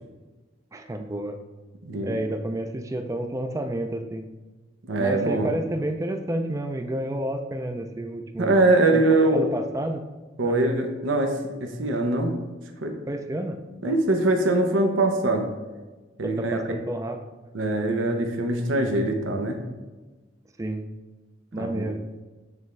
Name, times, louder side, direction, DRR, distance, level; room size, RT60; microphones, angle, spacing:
voice 1, 0.7-1.4 2.0-4.3 5.0-8.5 8.9-9.0 9.3-10.0 10.4-10.6 13.1-13.6 13.8-13.9 16.2-17.2 20.6-20.8 21.5-22.0, right 1 dB, 15° right, 6 dB, 0.4 m, -30 dB
voice 2, 4.8-5.5 8.4-9.5 10.4-12.3 12.8-12.9 13.8-15.5 16.2-16.6 17.5-19.6 21.5-21.9, right 2 dB, 85° right, 4 dB, 0.8 m, -23 dB
9.0 x 3.5 x 3.2 m, 1.2 s
head